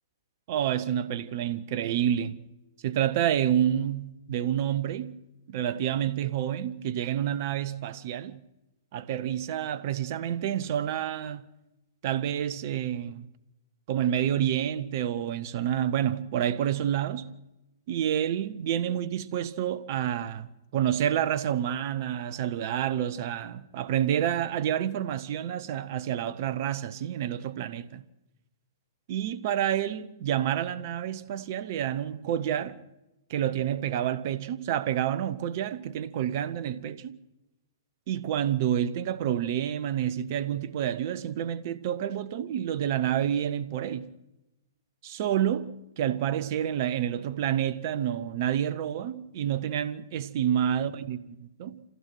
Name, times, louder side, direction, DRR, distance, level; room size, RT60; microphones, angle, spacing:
voice 1, 0.5-2.4 2.8-5.2 5.5-8.4 8.9-11.4 12.0-13.3 13.9-17.4 17.9-28.0 29.1-32.8 33.3-37.2 38.1-44.1 45.0-51.2 51.6-51.8, right 10 dB, 45° right, 1.0 m, -29 dB
26.5 x 15.5 x 6.3 m
figure-of-eight pair, 115°, 2 cm